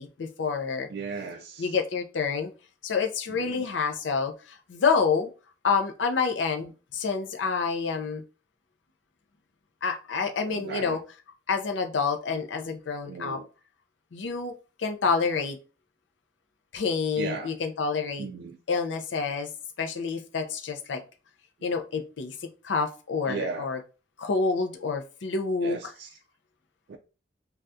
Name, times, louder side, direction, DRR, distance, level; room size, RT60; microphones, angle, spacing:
voice 1, 0.0-0.9 1.6-2.5 2.8-5.3 5.6-8.2 9.8-11.0 11.5-13.4 14.1-15.6 16.7-18.3 18.7-19.5 19.8-21.0 21.6-23.8 24.2-25.9, left 5 dB, 80° left, 0.5 m, -28 dB
voice 2, 0.9-1.7 3.3-3.7 10.5-11.0 13.1-13.5 17.2-17.5 18.2-18.6 23.3-23.7 25.6-26.1 26.9-27.0, right 4 dB, 60° right, 0.3 m, -36 dB
3.4 x 2.3 x 2.6 m
head